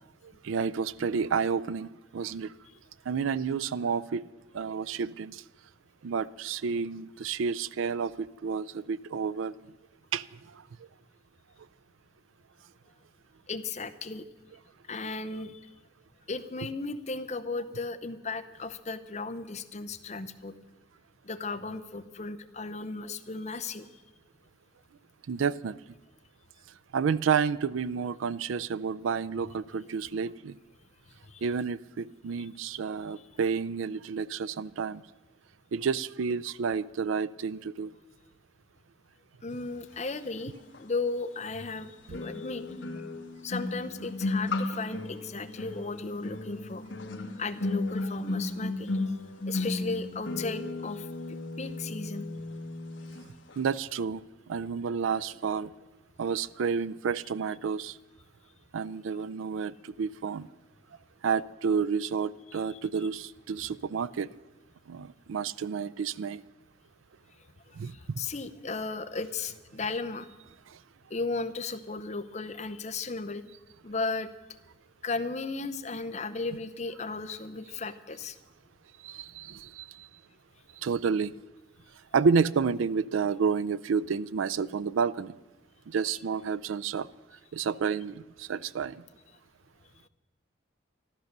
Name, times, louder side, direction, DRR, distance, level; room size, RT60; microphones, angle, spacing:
voice 1, 0.4-2.5 3.1-4.2 4.5-5.4 6.0-9.5 10.1-10.3 25.3-25.8 26.9-30.6 31.4-35.0 35.7-37.9 42.1-42.2 53.6-54.2 54.5-55.7 56.2-58.0 58.7-60.5 61.2-64.3 64.9-66.4 67.8-68.2 79.0-80.1 80.8-81.3 82.1-85.3 85.9-87.1 87.5-89.0, right 6 dB, 85° right, 19 dB, 0.4 m, -30 dB
voice 2, 13.5-14.2 14.9-15.6 16.3-20.5 21.2-24.0 31.3-31.4 39.4-40.5 40.8-42.6 43.4-46.9 47.4-49.0 49.5-51.1 51.6-52.3 67.7-70.3 71.1-73.4 73.8-74.3 75.0-78.4, left 3 dB, 35° left, 10 dB, 0.7 m, -35 dB
sound 1, 40.7-40.8 42.1-53.2 53.5-53.8, left 2 dB, 70° left, 1.2 m, -34 dB
13.5 x 13.0 x 6.6 m, 1.1 s
head